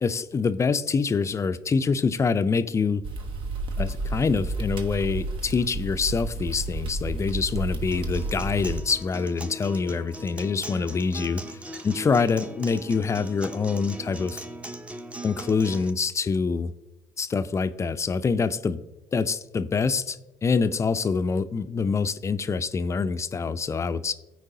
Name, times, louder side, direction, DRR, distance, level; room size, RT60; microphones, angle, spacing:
voice 1, 0.0-3.0 3.8-11.6 11.8-14.4 15.2-16.7 17.2-18.8 19.1-24.1, left 5 dB, 30° left, 12 dB, 0.4 m, -25 dB
sound 1, 3.0-8.8, right 2 dB, 55° right, 0.9 m, -31 dB
Acoustic guitar, 7.9-15.9, right 1 dB, 10° right, 0.6 m, -39 dB
13.5 x 4.6 x 2.7 m, 0.99 s
hypercardioid pair, 60°, 10 cm